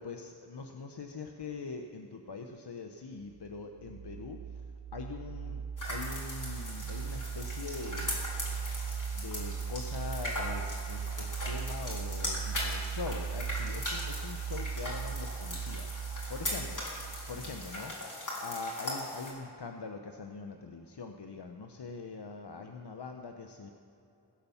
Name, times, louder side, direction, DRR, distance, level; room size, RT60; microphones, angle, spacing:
voice 1, 0.0-4.7 4.9-5.6 5.9-8.9 9.1-16.8 17.1-18.1 18.4-23.7, left 4 dB, 65° left, 4 dB, 0.9 m, -43 dB
sound 1, 3.3-17.8, right 6 dB, 80° right, 0.8 m, -38 dB
sound 2, 5.8-19.3, left 1 dB, 45° left, 3.9 m, -39 dB
17.0 x 8.6 x 7.1 m, 2.8 s
wide cardioid pair, 45°, 43 cm